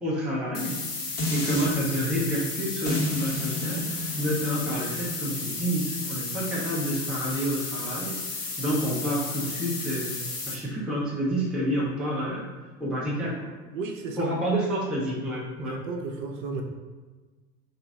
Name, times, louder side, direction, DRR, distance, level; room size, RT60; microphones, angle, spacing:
voice 1, 0.0-10.1 10.5-12.5 12.8-13.5 14.2-15.8, equal, ahead, -6 dB, 0.4 m, -29 dB
sound 1, 0.5-10.5, left 3 dB, 80° left, 0.8 m, -34 dB
sound 2, 1.2-1.7 2.9-8.0 8.5-8.6, left 1 dB, 30° left, 1.2 m, -33 dB
voice 2, 13.7-14.3 15.6-16.6, right 4 dB, 55° right, 3 dB, 0.6 m, -33 dB
2.8 x 2.5 x 3.5 m, 1.3 s
figure-of-eight pair, 85°, 47 cm